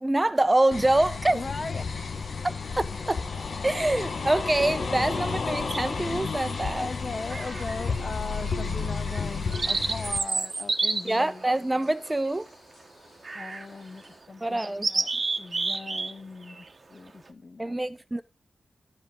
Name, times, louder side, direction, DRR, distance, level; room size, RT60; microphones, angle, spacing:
voice 1, 0.0-1.4 2.8-3.2 3.6-6.9 11.0-12.5 14.4-14.9 17.6-18.2, right 1 dB, 20° right, 0.7 m, -25 dB
sound 1, 0.7-10.2, left 4 dB, 65° left, 1.0 m, -32 dB
voice 2, 1.3-2.0 6.8-11.5 13.3-15.1 15.4-17.8, left 3 dB, 45° left, 0.6 m, -39 dB
sound 2, 2.2-14.2, left 2 dB, 90° left, 4.3 m, -57 dB
sound 3, 5.7-6.2 7.3-8.0 8.4-8.5 9.1-12.5 13.2-13.7 14.1-14.2 14.6-16.1 16.4-16.7, right 3 dB, 45° right, 1.0 m, -30 dB
12.0 x 5.1 x 3.7 m
wide cardioid pair, 75°, 0 cm